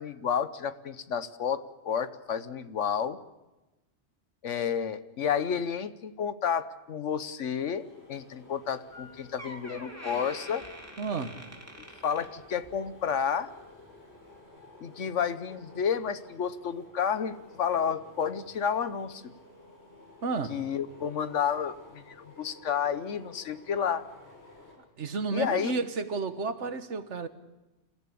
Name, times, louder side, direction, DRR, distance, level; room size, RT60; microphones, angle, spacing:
voice 1, 0.0-3.2 4.4-7.8 8.1-10.6 12.0-13.5 14.8-19.2 20.5-24.1 25.3-25.7, left 7 dB, 90° left, 1.4 m, -31 dB
sound 1, 7.7-24.7, left 2 dB, 65° left, 6.8 m, -53 dB
Door, 8.9-9.0 9.4-12.9 13.2-13.5 14.2-14.3, equal, 10° right, 3.2 m, -45 dB
voice 2, 11.0-11.4 20.2-20.6 25.0-27.3, right 4 dB, 75° right, 1.6 m, -32 dB
27.5 x 15.0 x 8.6 m
omnidirectional pair, 1.2 m